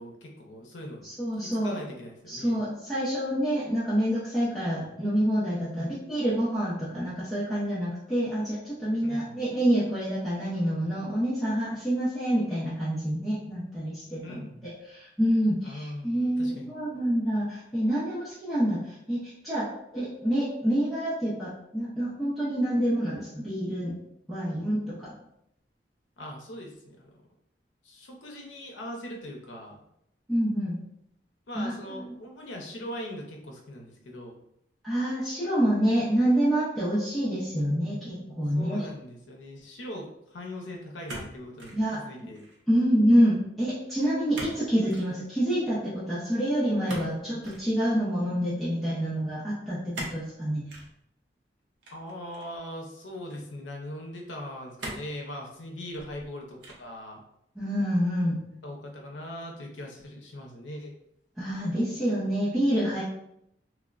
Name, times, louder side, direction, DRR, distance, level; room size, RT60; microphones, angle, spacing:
voice 1, 0.0-1.0 1.4-2.6 5.7-5.9 9.0-9.4 14.2-14.7 15.6-16.7 26.2-27.1 27.8-29.8 31.5-34.4 38.6-42.4 51.9-57.2 58.6-61.0, left 1 dB, 85° left, 1 dB, 0.6 m, -40 dB
voice 2, 1.0-1.8 2.3-19.7 19.9-23.9 24.3-25.1 30.3-30.8 31.6-32.1 34.8-38.8 41.7-42.0 42.7-50.6 57.6-58.4 61.4-63.0, equal, ahead, -11 dB, 0.5 m, -27 dB
sound 1, 41.1-41.8 42.2-42.6 44.3-44.6 44.9-45.1 46.9-47.7 49.9-50.3 50.7-50.9 51.8-52.6 53.3-53.4 54.8-55.2 55.8-56.3 56.6-57.0, right 1 dB, 70° right, 0.6 m, -40 dB
3.1 x 2.0 x 2.4 m, 0.78 s
head